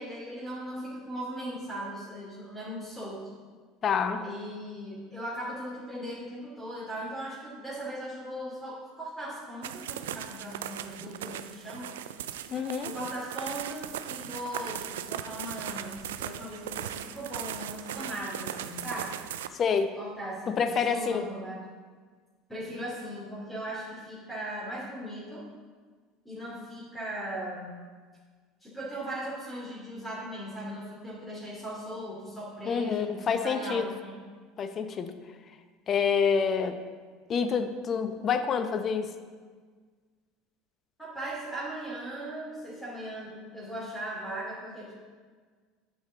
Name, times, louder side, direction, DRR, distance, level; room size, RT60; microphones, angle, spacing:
voice 1, 0.0-3.3 4.2-11.9 12.8-19.1 20.0-21.6 22.5-25.4 26.2-27.8 28.6-34.2 41.0-44.9, right 1 dB, 5° left, -7 dB, 2.6 m, -38 dB
voice 2, 3.8-4.2 12.5-12.9 19.5-19.9 20.5-21.3 32.7-33.9 34.6-35.1 35.9-36.8 37.3-39.1, left 6 dB, 40° left, 9 dB, 0.7 m, -27 dB
sound 1, 9.6-19.5, right 10 dB, 80° right, 0.3 m, -38 dB
8.5 x 6.3 x 3.9 m, 1.5 s
hypercardioid pair, 75°, 0 cm